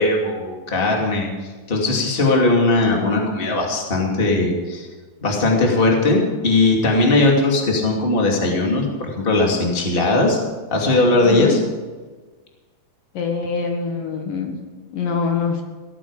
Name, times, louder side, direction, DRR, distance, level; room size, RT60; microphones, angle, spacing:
voice 1, 0.0-4.9 5.2-10.4 10.7-11.6, left 2 dB, 15° left, 0 dB, 2.4 m, -19 dB
voice 2, 11.2-11.6 13.1-14.6 14.9-15.6, left 5 dB, 70° left, 3 dB, 3.2 m, -24 dB
16.5 x 14.0 x 5.0 m, 1.3 s
omnidirectional pair, 4.1 m